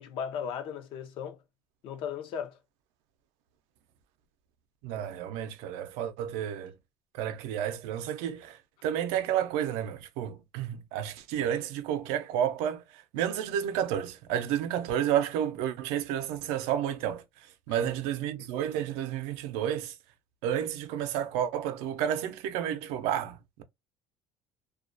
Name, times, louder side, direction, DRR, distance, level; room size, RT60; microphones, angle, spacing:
voice 1, 0.0-1.4 1.8-2.6 17.7-17.9 18.4-18.5, left 7 dB, 60° left, 0.5 m, -37 dB
voice 2, 4.8-6.7 7.1-19.9 20.4-23.6, right 10 dB, 85° right, 0.5 m, -31 dB
2.3 x 2.2 x 2.4 m
cardioid pair, 145°, 10 cm